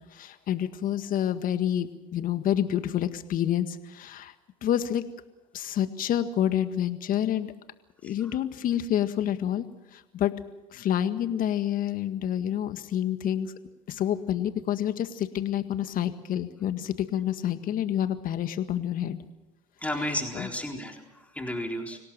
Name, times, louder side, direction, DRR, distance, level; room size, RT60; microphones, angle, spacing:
voice 1, 0.1-4.3 4.6-5.0 5.5-7.5 8.0-9.7 9.9-10.3 10.7-13.5 13.9-19.2 20.4-20.5, left 10 dB, 55° left, 10 dB, 1.8 m, -28 dB
voice 2, 19.8-22.0, left 1 dB, 10° left, 2 dB, 4.0 m, -33 dB
25.5 x 17.5 x 7.5 m, 0.99 s
hypercardioid pair, 75°, 17 cm